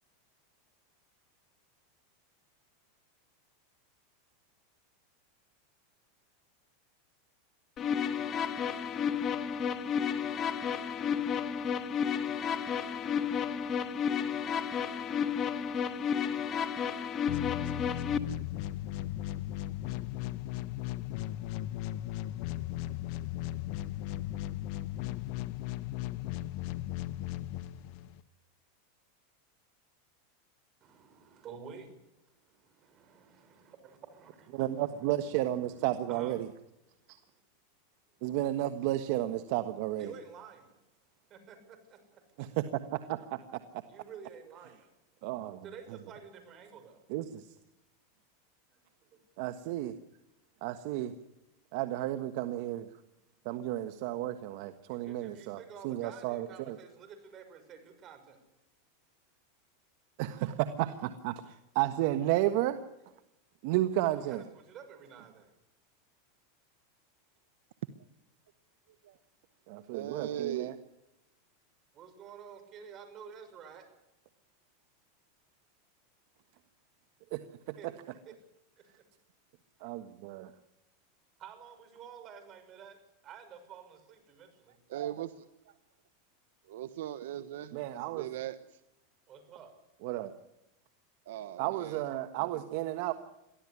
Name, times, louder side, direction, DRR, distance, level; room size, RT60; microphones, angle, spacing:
sound 1, 7.8-18.2, left 7 dB, 30° left, 1.6 m, -32 dB
sound 2, 17.3-28.2, left 14 dB, 55° left, 0.9 m, -37 dB
voice 1, 30.8-32.0 32.3-36.4 40.0-40.7 41.3-42.4 43.9-44.9 45.6-47.0 48.7-48.8 49.1-49.2 54.9-58.4 64.1-65.5 71.9-73.9 77.8-77.9 78.3-78.4 81.4-84.8 89.3-89.7, right 7 dB, 35° right, 8 dB, 6.3 m, -50 dB
voice 2, 34.5-36.5 37.1-37.2 38.2-40.1 42.4-42.6 42.9-43.4 45.2-45.6 47.1-47.5 49.4-49.9 50.6-51.1 51.7-52.9 53.4-56.8 60.2-62.8 63.6-64.4 69.7-70.8 77.3-77.8 79.8-80.5 87.7-88.3 90.0-90.3 91.6-93.1, right 14 dB, 60° right, 10 dB, 1.4 m, -32 dB
voice 3, 69.9-70.7 84.9-85.3 86.7-87.7 88.1-88.5 91.3-91.6, right 12 dB, 75° right, 11 dB, 1.1 m, -37 dB
23.0 x 15.0 x 9.8 m, 0.90 s
supercardioid pair, 135°, 0 cm